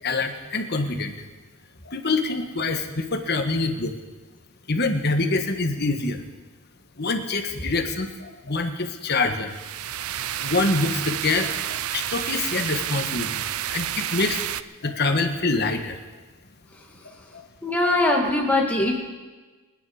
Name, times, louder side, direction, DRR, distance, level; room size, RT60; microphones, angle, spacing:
voice 1, 0.0-1.1 1.8-3.9 4.7-6.2 7.0-9.5 10.4-14.5 14.8-16.0 17.0-17.4, left 3 dB, 50° left, 6 dB, 1.5 m, -25 dB
sound 1, 9.5-14.6, right 11 dB, 85° right, 0.5 m, -30 dB
voice 2, 16.7-17.3 17.6-18.9, left 1 dB, 5° left, -1 dB, 2.3 m, -22 dB
26.5 x 9.7 x 5.0 m, 1.3 s
head